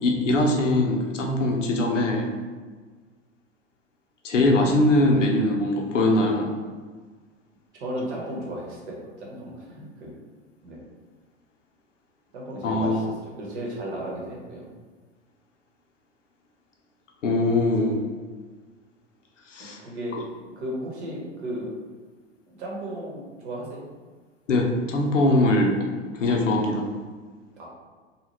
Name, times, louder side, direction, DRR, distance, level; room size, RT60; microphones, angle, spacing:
voice 1, 0.0-2.3 4.2-6.5 12.6-13.1 17.2-18.0 19.5-19.8 24.5-25.9 26.1-26.9, left 1 dB, 85° left, 1 dB, 0.6 m, -22 dB
voice 2, 7.8-10.1 10.6-10.8 12.3-14.7 19.8-20.2 20.6-21.7 22.5-23.8 27.6-27.7, right 1 dB, 65° right, -3 dB, 1.1 m, -34 dB
2.7 x 2.3 x 3.2 m, 1.4 s
figure-of-eight pair, 90°, 36 cm